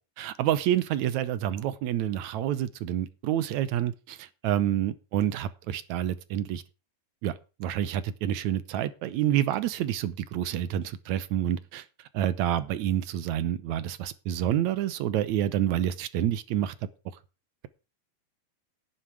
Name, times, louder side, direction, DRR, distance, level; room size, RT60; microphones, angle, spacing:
voice 1, 0.2-6.6 7.2-11.9 12.1-16.7, right 11 dB, 75° right, 16 dB, 1.9 m, -28 dB
11.0 x 10.5 x 4.7 m, 0.32 s
omnidirectional pair, 3.8 m